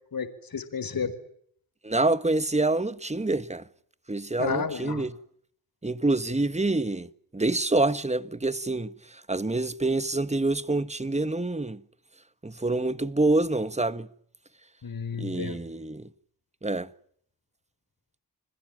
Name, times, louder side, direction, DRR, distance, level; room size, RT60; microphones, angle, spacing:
voice 1, 0.1-1.1 4.4-5.1 14.8-15.6, left 5 dB, 65° left, 4.6 m, -31 dB
voice 2, 1.8-3.6 4.1-5.1 5.8-11.8 12.4-14.1 15.2-16.1 16.6-16.9, right 2 dB, 20° right, 1.6 m, -27 dB
30.0 x 21.0 x 9.1 m
cardioid pair, 65°, 37 cm